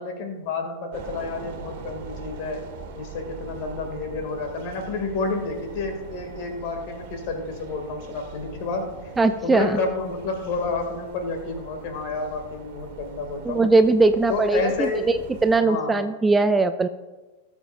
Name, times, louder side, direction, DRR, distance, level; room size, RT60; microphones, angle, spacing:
voice 1, 0.0-2.7 3.0-9.1 9.4-13.6 14.3-15.1 15.6-16.0, left 3 dB, 45° left, 5 dB, 2.0 m, -30 dB
sound 1, 0.9-15.6, right 5 dB, 50° right, 1.5 m, -41 dB
voice 2, 9.2-9.8 13.5-16.9, right 3 dB, 10° right, 11 dB, 0.4 m, -20 dB
18.0 x 7.1 x 2.4 m, 1.2 s
figure-of-eight pair, 90°, 0 cm